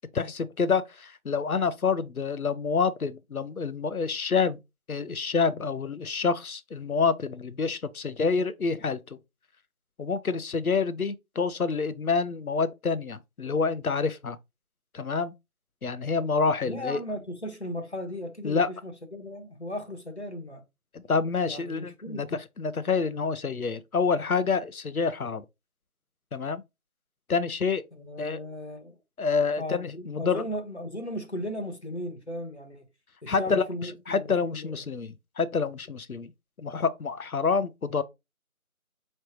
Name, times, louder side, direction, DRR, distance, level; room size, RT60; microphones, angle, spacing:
voice 1, 0.1-4.6 4.9-9.2 10.0-14.4 14.9-15.3 15.8-17.0 18.4-18.7 20.9-25.4 26.3-26.6 27.3-27.8 28.2-28.4 29.2-30.4 33.3-36.3 36.6-38.0, left 5 dB, 75° left, 0.7 m, -27 dB
voice 2, 16.6-20.6 21.4-22.2 28.0-29.0 29.6-32.9 33.2-34.8, left 1 dB, 50° left, 1.1 m, -36 dB
5.1 x 3.2 x 3.0 m
figure-of-eight pair, 175°, 44 cm